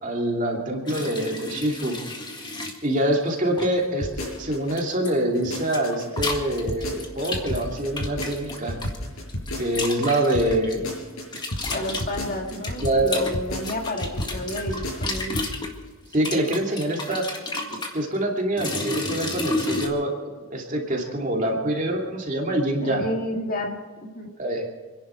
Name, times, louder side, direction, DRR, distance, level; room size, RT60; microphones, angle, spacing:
voice 1, 0.0-2.0 2.8-8.8 9.6-10.8 12.8-13.2 16.1-17.2 17.9-20.1 20.5-23.0 24.4-24.6, right 1 dB, 35° right, 0 dB, 2.7 m, -25 dB
sound 1, 0.9-2.8 3.6-3.9 4.8-5.1 5.4-9.0 9.3-10.7 11.3-15.7 16.1-18.0 18.6-19.9, left 2 dB, 20° left, 1.8 m, -31 dB
sound 2, 4.0-4.8 5.2-10.1 10.3-15.5 15.8-15.9, left 1 dB, 80° left, 5.6 m, -32 dB
voice 2, 11.7-15.4 22.8-24.3, left 1 dB, 40° left, 1 dB, 2.2 m, -31 dB
28.5 x 11.0 x 4.6 m, 1.4 s
head